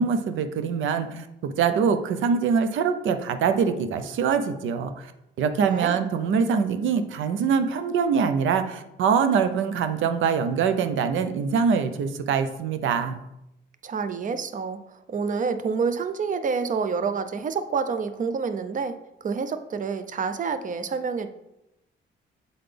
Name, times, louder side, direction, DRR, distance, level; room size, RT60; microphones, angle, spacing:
voice 1, 0.0-5.1 5.4-13.2, right 6 dB, 80° right, 9 dB, 0.7 m, -24 dB
voice 2, 5.7-6.0 13.8-21.3, right 5 dB, 40° right, 10 dB, 0.6 m, -28 dB
7.9 x 4.0 x 3.4 m, 0.87 s
cardioid pair, 90°, 20 cm